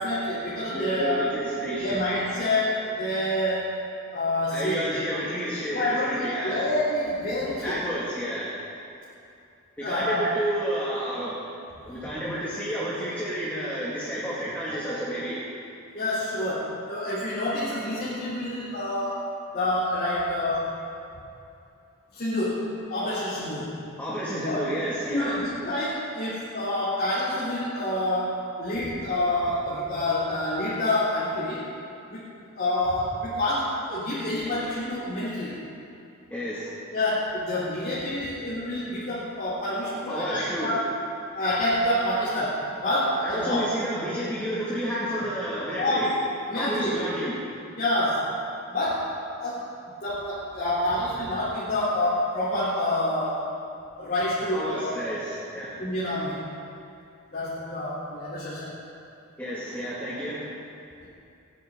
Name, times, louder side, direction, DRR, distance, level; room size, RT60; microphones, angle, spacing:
voice 1, 0.0-1.4 1.8-3.7 4.1-4.9 5.7-7.8 9.8-10.3 14.7-14.8 15.9-20.7 22.1-23.8 24.4-24.7 25.1-31.7 32.1-32.2 32.6-35.7 36.9-40.9 41.3-43.6 45.8-46.2 46.5-47.0 47.8-48.3 48.7-49.1 49.4-49.7 50.0-53.4 54.0-54.9 55.8-56.5 57.3-58.8, left 1 dB, 45° left, -10 dB, 3.7 m, -27 dB
voice 2, 0.7-2.0 4.5-6.6 7.6-8.6 9.8-11.4 11.9-15.4 24.0-25.4 36.3-36.8 40.1-40.8 43.2-46.1 46.5-47.4 54.5-55.8 59.4-60.5, equal, 10° left, -8 dB, 2.4 m, -30 dB
29.0 x 10.5 x 4.0 m, 2.6 s
head